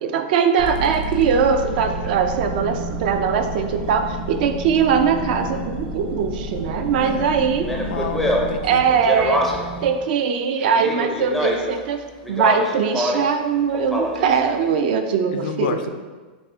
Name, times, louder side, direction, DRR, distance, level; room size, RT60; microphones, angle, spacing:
voice 1, 0.0-7.7 8.6-9.5 9.8-12.0 12.3-15.9, right 6 dB, 60° right, 6 dB, 0.4 m, -21 dB
sound 1, 0.6-8.6, equal, 85° right, 0.8 m, -31 dB
sound 2, 1.7-9.9, right 4 dB, 35° right, 0.7 m, -35 dB
voice 2, 2.6-2.9 7.0-7.3 7.7-8.9 15.3-15.9, left 6 dB, 65° left, 8 dB, 0.4 m, -30 dB
Speech, 7.6-9.8 10.6-11.8 12.2-13.3 13.7-14.4, equal, ahead, 0.4 m, -25 dB
5.9 x 2.1 x 3.6 m, 1.3 s
supercardioid pair, 145°, 6 cm